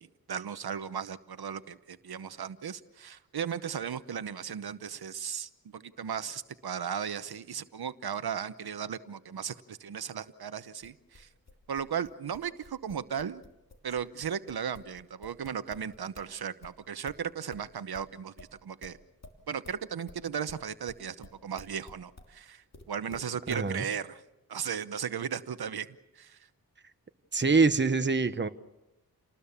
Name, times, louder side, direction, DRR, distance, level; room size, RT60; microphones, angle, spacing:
voice 1, 0.0-11.3 11.7-13.4 13.8-19.0 19.5-24.2 24.5-25.9 26.2-26.4, right 7 dB, 85° right, 12 dB, 1.0 m, -36 dB
sound 1, 10.8-16.3 16.6-22.3 22.7-23.7, left 2 dB, 45° left, 2.9 m, -51 dB
voice 2, 23.5-23.9 27.3-28.5, right 4 dB, 30° right, 10 dB, 1.1 m, -25 dB
30.0 x 19.5 x 7.2 m, 0.97 s
wide cardioid pair, 110°, 37 cm